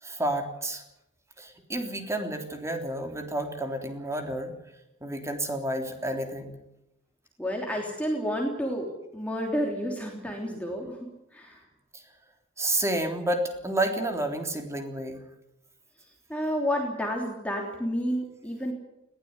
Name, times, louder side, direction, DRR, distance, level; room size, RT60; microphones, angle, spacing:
voice 1, 0.0-0.8 1.4-4.5 5.0-6.6 11.9-12.0 12.6-15.2, right 1 dB, 15° right, 4 dB, 3.4 m, -30 dB
voice 2, 7.4-8.9 9.1-11.0 11.3-11.6 16.3-18.7, equal, 5° left, 0 dB, 3.2 m, -30 dB
21.0 x 17.0 x 9.6 m, 0.87 s
head